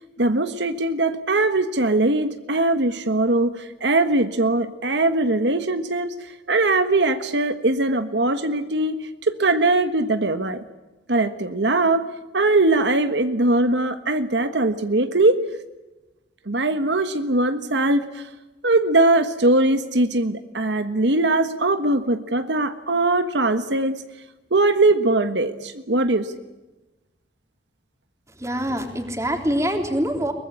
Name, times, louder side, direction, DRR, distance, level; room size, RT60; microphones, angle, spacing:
voice 1, 0.2-10.6 11.1-12.1 12.3-15.4 16.5-18.3 18.6-24.0 24.5-26.4, right 2 dB, 80° right, 10 dB, 1.4 m, -21 dB
voice 2, 28.3-30.3, equal, 15° right, 5 dB, 3.4 m, -25 dB
23.0 x 20.5 x 9.8 m, 1.1 s
head